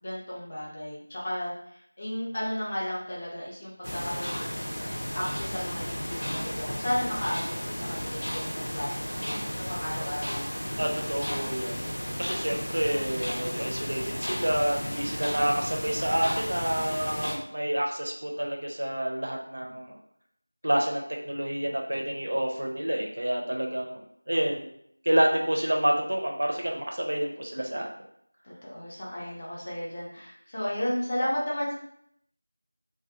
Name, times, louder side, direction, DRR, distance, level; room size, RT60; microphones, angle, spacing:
voice 1, 0.0-4.8 5.1-11.4 28.4-31.7, equal, 25° left, -6 dB, 0.6 m, -34 dB
sound 1, 3.8-17.4, equal, 70° left, 0.6 m, -33 dB
voice 2, 10.8-11.8 12.2-20.0 20.6-24.0 24.3-24.7 25.0-27.9, right 1 dB, 55° right, 1 dB, 0.5 m, -28 dB
2.2 x 2.1 x 2.8 m, 0.70 s
figure-of-eight pair, 175°, 0 cm